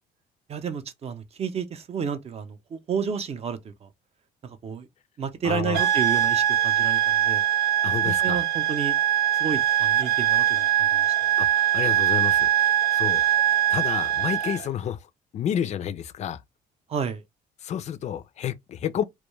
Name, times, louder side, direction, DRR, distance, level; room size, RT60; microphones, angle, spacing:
voice 1, 0.5-3.9 4.4-4.9 5.2-7.4 8.0-9.0 9.4-11.1 16.9-17.2, right 7 dB, 40° right, 0.5 m, -31 dB
voice 2, 5.4-5.9 7.8-8.4 11.4-12.5 12.9-13.2 13.5-16.4 17.6-19.0, left 9 dB, 40° left, 0.4 m, -30 dB
sound 1, 5.7-14.7, right 11 dB, 80° right, 0.6 m, -22 dB
2.2 x 2.2 x 3.0 m
cardioid pair, 110°, 17 cm